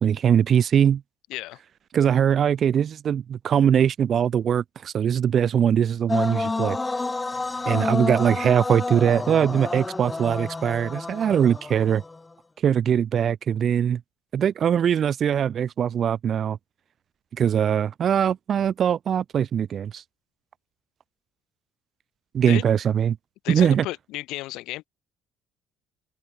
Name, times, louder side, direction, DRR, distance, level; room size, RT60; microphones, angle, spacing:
voice 1, 0.0-1.0 1.9-6.8 7.7-12.0 12.6-14.0 14.3-16.6 17.4-20.0 22.3-23.2 23.5-23.9, right 8 dB, 50° right, 0.4 m, -21 dB
sound 1, 6.1-12.2, left 3 dB, 20° left, 0.5 m, -29 dB
voice 2, 23.4-24.8, left 18 dB, 75° left, 0.6 m, -33 dB
open air
supercardioid pair, 70°, 0 cm